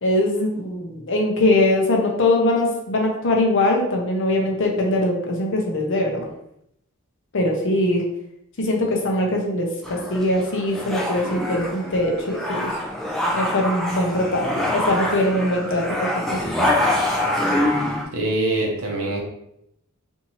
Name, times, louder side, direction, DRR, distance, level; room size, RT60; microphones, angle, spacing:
voice 1, 0.0-6.3 7.3-8.0 8.6-12.7 13.3-15.8 16.1-16.8, left 1 dB, 60° left, 1 dB, 0.7 m, -22 dB
sound 1, 9.8-18.0, left 1 dB, ahead, 0.4 m, -25 dB
voice 2, 18.1-19.2, right 2 dB, 70° right, -1 dB, 0.8 m, -23 dB
2.6 x 2.6 x 2.9 m, 0.76 s
head